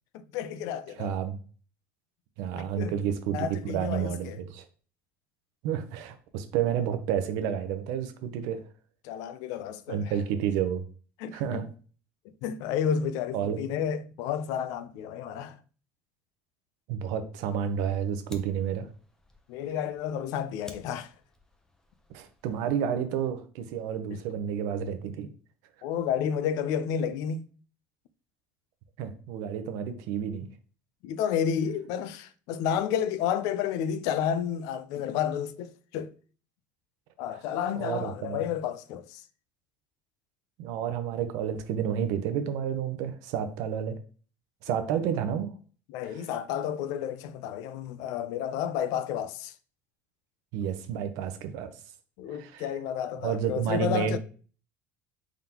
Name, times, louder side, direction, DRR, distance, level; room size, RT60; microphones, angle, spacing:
voice 1, 0.1-1.2 2.5-2.9 3.3-4.4 9.0-10.1 11.2-11.6 12.4-15.6 19.5-21.1 24.1-24.2 25.8-27.5 31.0-36.1 37.2-39.2 45.9-49.5 52.2-54.2, left 8 dB, 70° left, 0.4 m, -31 dB
voice 2, 1.0-1.4 2.4-4.6 5.6-8.6 9.9-10.8 11.3-11.7 13.3-13.6 16.9-18.9 22.1-25.3 29.0-30.5 37.7-38.4 40.6-44.0 44.6-45.5 50.5-51.7 52.4-52.6 53.2-54.2, right 8 dB, 70° right, 0.7 m, -30 dB
Fire, 17.4-22.7, left 2 dB, 10° left, 0.7 m, -52 dB
3.8 x 3.6 x 2.9 m
supercardioid pair, 120°, 6 cm